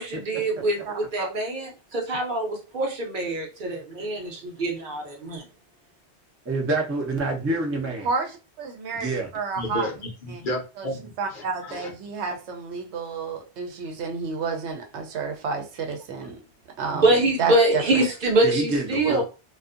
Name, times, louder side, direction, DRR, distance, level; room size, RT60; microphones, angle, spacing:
voice 1, 0.0-0.8 1.1-5.4 17.0-19.2, right 2 dB, 55° right, 0.8 m, -24 dB
voice 2, 6.5-8.1 8.9-9.3 18.4-19.2, right 2 dB, 20° right, 0.4 m, -27 dB
voice 3, 8.0-9.9 10.3-10.4 10.8-10.9 11.2-16.4 16.8-17.1 17.4-18.0 19.0-19.2, right 5 dB, 80° right, 0.9 m, -30 dB
voice 4, 9.6-11.9, left 1 dB, 55° left, 0.7 m, -32 dB
2.5 x 2.3 x 2.4 m
omnidirectional pair, 1.1 m